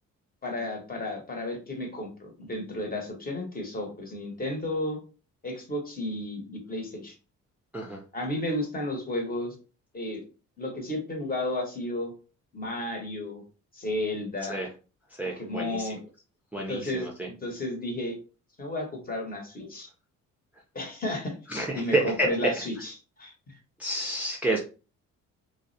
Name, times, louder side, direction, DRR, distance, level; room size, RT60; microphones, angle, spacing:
voice 1, 0.4-5.0 5.4-7.1 8.1-9.5 9.9-10.2 10.6-12.1 12.5-13.4 13.7-14.6 15.2-16.0 16.7-18.2 18.6-19.9 20.7-21.3 21.7-23.5, left 1 dB, 30° left, 2 dB, 0.9 m, -33 dB
voice 2, 15.2-15.9 16.5-17.3 21.5-22.3 23.8-24.6, right 1 dB, 5° right, -2 dB, 0.4 m, -29 dB
2.3 x 2.0 x 2.6 m, 0.34 s
cardioid pair, 90°, 30 cm